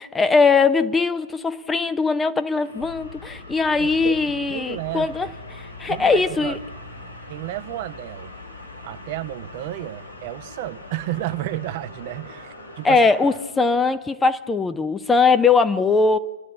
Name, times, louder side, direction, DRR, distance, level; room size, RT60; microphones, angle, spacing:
voice 1, 0.0-5.3 5.5-6.6 12.8-16.2, left 4 dB, 10° left, 0.8 m, -20 dB
sound 1, 2.5-13.4, left 1 dB, 90° left, 4.1 m, -43 dB
sound 2, 2.7-14.7, left 3 dB, 70° left, 3.4 m, -44 dB
voice 2, 3.8-5.3 5.9-6.6 7.3-8.3 8.8-13.1, right 15 dB, 45° right, 0.9 m, -32 dB
30.0 x 11.0 x 8.6 m
figure-of-eight pair, 110°, 0 cm